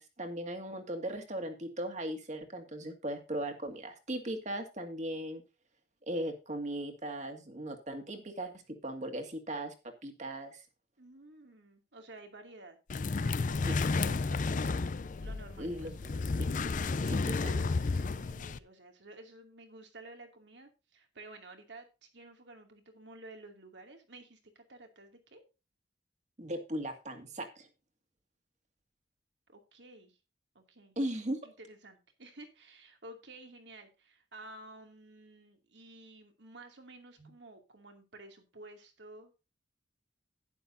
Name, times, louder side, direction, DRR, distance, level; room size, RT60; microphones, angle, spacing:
voice 1, 0.0-5.4 6.1-8.5 8.8-9.7 10.0-10.6 13.7-13.8 15.6-16.0 17.0-17.6 26.4-27.7 31.0-31.4 37.2-37.3, right 1 dB, 40° right, 5 dB, 2.1 m, -38 dB
voice 2, 11.0-12.8 13.2-14.8 15.2-16.4 17.6-25.4 29.5-30.2 30.5-31.0 31.4-39.3, right 2 dB, 75° right, 4 dB, 2.5 m, -52 dB
sound 1, 12.9-18.6, left 3 dB, 45° left, 0.5 m, -32 dB
11.5 x 10.0 x 2.6 m, 0.29 s
head